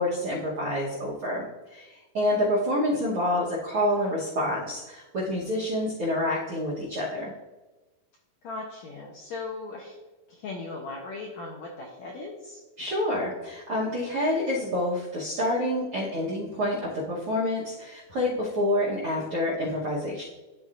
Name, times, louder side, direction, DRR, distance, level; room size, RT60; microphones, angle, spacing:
voice 1, 0.0-1.4 1.7-1.9 2.1-7.3 12.8-20.2, left 1 dB, 70° right, -4 dB, 1.3 m, -27 dB
voice 2, 8.4-10.0 10.3-12.6, left 3 dB, 80° left, -2 dB, 1.6 m, -38 dB
12.5 x 4.3 x 2.5 m, 1.2 s
omnidirectional pair, 4.2 m